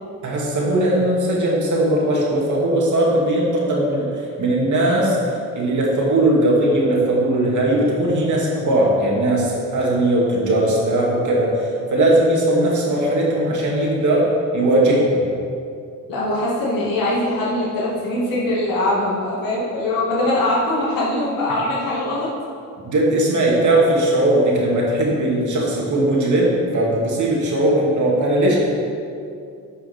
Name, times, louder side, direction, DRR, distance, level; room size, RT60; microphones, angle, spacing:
voice 1, 0.2-5.2 5.5-15.2 22.8-28.6, right 1 dB, 60° right, -3 dB, 2.4 m, -19 dB
voice 2, 16.1-22.3, left 1 dB, 75° left, -7 dB, 2.3 m, -22 dB
9.0 x 5.7 x 5.6 m, 2.5 s
cardioid pair, 110°, 34 cm